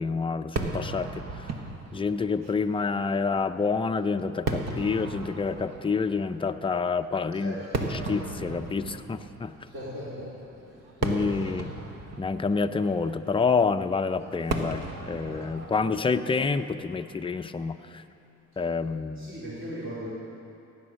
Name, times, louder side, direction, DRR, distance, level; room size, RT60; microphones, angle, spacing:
voice 1, 0.0-1.5 1.9-7.5 8.0-9.5 11.0-11.7 12.2-18.0 18.6-19.4, left 4 dB, 20° left, 9 dB, 0.5 m, -28 dB
Fireworks, 0.6-17.9, right 3 dB, 60° right, 1.3 m, -37 dB
voice 2, 9.7-10.3 10.6-10.9 11.3-11.4 19.2-20.1, equal, 45° right, -8 dB, 3.6 m, -38 dB
15.5 x 8.9 x 6.3 m, 2.7 s
cardioid pair, 90°, 30 cm